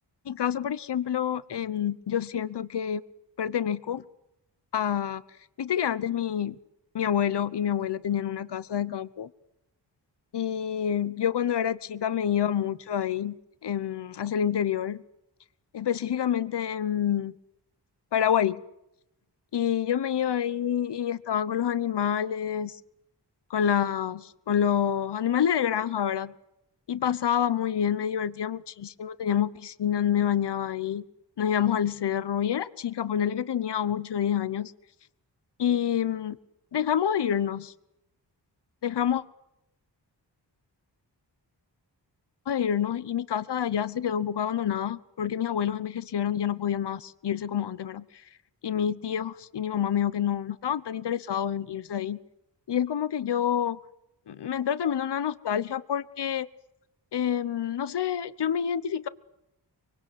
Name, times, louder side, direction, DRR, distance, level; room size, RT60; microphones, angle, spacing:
voice 1, 0.2-3.0 3.4-4.0 4.7-5.2 5.6-6.6 6.9-9.3 10.3-13.4 13.6-15.0 15.7-17.3 18.1-18.6 19.5-22.8 23.5-26.3 26.9-31.0 31.4-34.7 35.6-36.4 36.7-37.7 38.8-39.2 42.5-48.1 48.6-52.2 52.7-53.8 54.3-56.5 57.1-59.1, left 9 dB, 70° left, 16 dB, 1.0 m, -27 dB
24.5 x 24.0 x 8.4 m, 0.86 s
cardioid pair, 70°, 42 cm